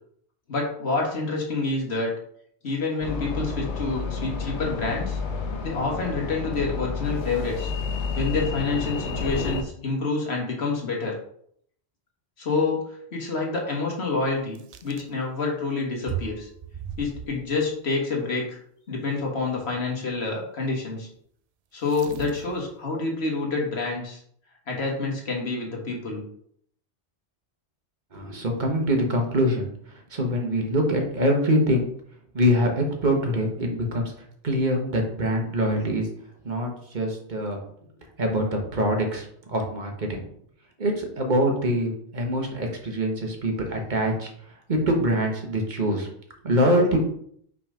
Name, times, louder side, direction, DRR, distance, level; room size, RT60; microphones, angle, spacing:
voice 1, 0.5-2.1 2.6-5.2 5.6-7.7 8.2-11.2 12.4-12.8 13.1-16.5 17.0-18.6 18.9-21.1 21.7-24.2 24.7-26.2, left 3 dB, 65° left, -1 dB, 1.8 m, -27 dB
sound 1, 3.0-9.6, left 4 dB, 85° left, 1.2 m, -30 dB
sound 2, 14.5-15.1 16.1-17.6 19.6-19.8 21.8-22.7, right 9 dB, 65° right, 0.3 m, -37 dB
voice 2, 28.1-31.9 32.3-34.1 34.4-36.1 36.4-37.6 38.2-40.2 40.8-44.3 44.7-46.1 46.4-47.0, equal, 45° right, 2 dB, 1.4 m, -24 dB
6.0 x 3.9 x 5.0 m, 0.66 s
omnidirectional pair, 1.2 m